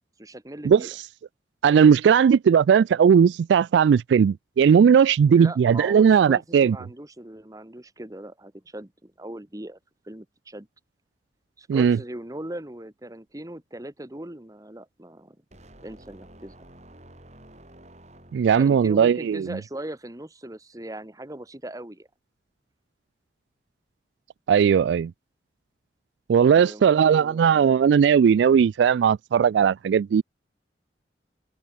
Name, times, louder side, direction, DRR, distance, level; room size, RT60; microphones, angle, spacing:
voice 1, 0.2-0.9 5.3-9.8 10.0-10.7 11.6-15.4 15.8-16.6 18.6-22.1 26.4-27.8, right 1 dB, 20° right, 1.3 m, -39 dB
voice 2, 1.6-6.8 11.7-12.0 18.3-19.5 24.5-25.1 26.3-30.2, right 7 dB, 80° right, 0.3 m, -18 dB
sound 1, 15.5-18.8, right 1 dB, 40° right, 6.8 m, -50 dB
open air
head